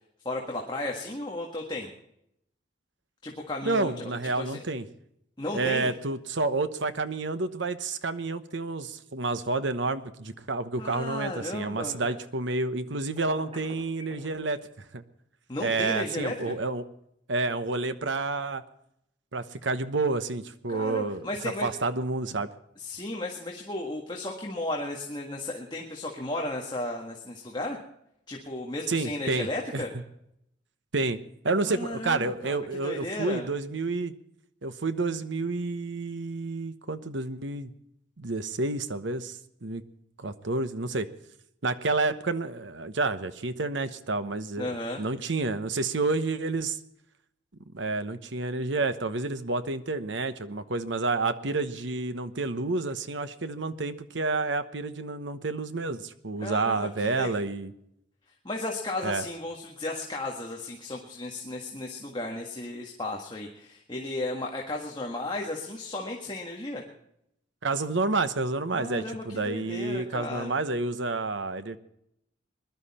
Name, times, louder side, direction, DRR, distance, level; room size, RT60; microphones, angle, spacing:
voice 1, 0.2-1.9 3.2-4.6 5.4-5.9 10.8-12.2 15.5-16.6 20.7-21.7 22.8-27.8 28.3-29.9 31.7-33.5 44.6-45.0 56.4-57.3 58.4-66.8 68.7-70.6, left 2 dB, 25° left, 0 dB, 1.7 m, -34 dB
voice 2, 3.6-4.8 5.5-14.6 14.9-15.0 15.6-16.8 17.3-18.6 19.3-22.5 28.9-29.8 30.9-34.1 34.6-37.7 38.2-39.8 40.2-41.1 41.6-46.8 47.7-57.7 59.0-59.3 67.6-71.8, right 3 dB, 70° right, 11 dB, 1.0 m, -29 dB
Telephone, 13.2-14.3, right 1 dB, 30° right, 6.5 m, -44 dB
21.5 x 12.0 x 4.3 m, 0.77 s
head